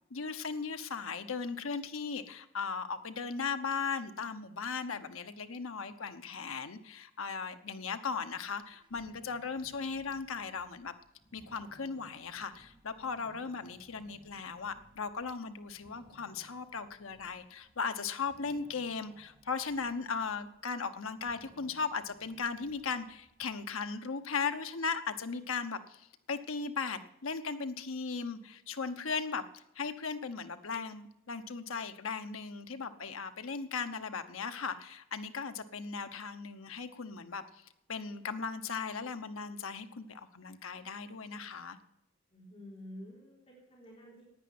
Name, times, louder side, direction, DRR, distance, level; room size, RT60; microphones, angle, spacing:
voice 1, 0.1-10.9 11.3-41.8, left 5 dB, 90° left, 8 dB, 1.0 m, -37 dB
sound 1, 8.3-23.7, right 1 dB, 20° right, 1.4 m, -62 dB
voice 2, 42.3-44.2, equal, 30° left, -4 dB, 3.7 m, -49 dB
10.0 x 9.4 x 9.3 m, 0.84 s
head